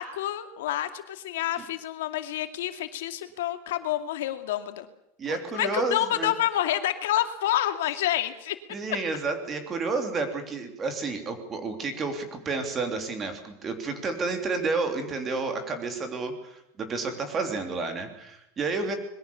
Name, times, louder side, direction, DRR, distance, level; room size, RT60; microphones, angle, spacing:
voice 1, 0.0-4.9 5.3-8.6, left 13 dB, 85° left, 8 dB, 2.4 m, -28 dB
voice 2, 5.2-6.3 8.7-18.9, right 3 dB, 20° right, 6 dB, 3.2 m, -30 dB
25.5 x 22.0 x 7.1 m, 0.80 s
supercardioid pair, 170°, 0 cm